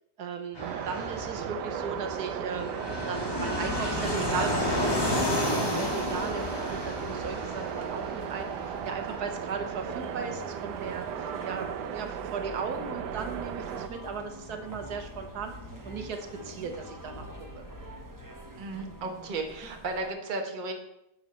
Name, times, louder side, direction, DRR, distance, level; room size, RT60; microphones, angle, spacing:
voice 1, 0.2-2.7 3.1-8.5 8.8-15.5 15.8-17.2 17.5-17.7, right 5 dB, 70° right, 6 dB, 1.3 m, -37 dB
Fixed-wing aircraft airplane, 0.5-18.9, left 1 dB, 15° left, 1.5 m, -35 dB
sound 1, 0.6-13.9, right 10 dB, 90° right, 1.2 m, -36 dB
sound 2, 3.3-20.1, right 2 dB, 20° right, 0.6 m, -45 dB
voice 2, 18.6-20.7, right 3 dB, 35° right, 3 dB, 1.1 m, -34 dB
11.0 x 6.2 x 4.3 m, 0.83 s
omnidirectional pair, 1.7 m